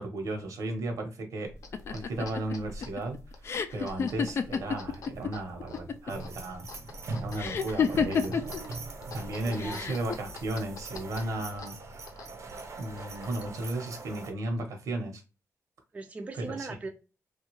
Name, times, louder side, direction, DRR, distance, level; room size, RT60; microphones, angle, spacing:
voice 1, 0.0-1.5 1.9-3.2 3.7-6.7 7.1-8.4 9.1-11.8 12.8-15.2 16.5-16.7, right 2 dB, 85° right, 1.0 m, -35 dB
sound 1, 1.5-13.6, left 2 dB, 85° left, 0.7 m, -47 dB
sound 2, 1.7-5.3 5.6-6.3 7.4-8.6 9.6-10.1, left 6 dB, 50° left, 0.3 m, -29 dB
sound 3, 6.1-14.3, right 3 dB, 65° right, 0.7 m, -41 dB
voice 2, 9.3-9.9 15.9-16.9, right 3 dB, 25° right, 0.4 m, -40 dB
3.4 x 2.3 x 3.0 m
wide cardioid pair, 155°, 6 cm